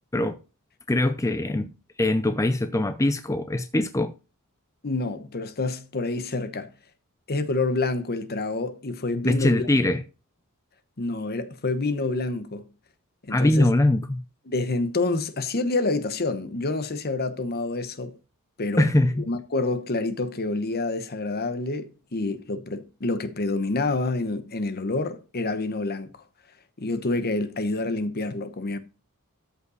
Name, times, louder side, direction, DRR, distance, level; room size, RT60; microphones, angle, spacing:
voice 1, 0.9-4.1 9.2-10.0 13.3-14.2 18.8-19.3, left 1 dB, 15° left, 0.5 m, -22 dB
voice 2, 4.8-6.7 7.3-9.7 11.0-12.6 13.2-13.7 14.5-18.2 18.6-18.9 19.3-26.2 26.8-28.8, left 3 dB, 45° left, 1.0 m, -27 dB
13.0 x 5.6 x 4.1 m
head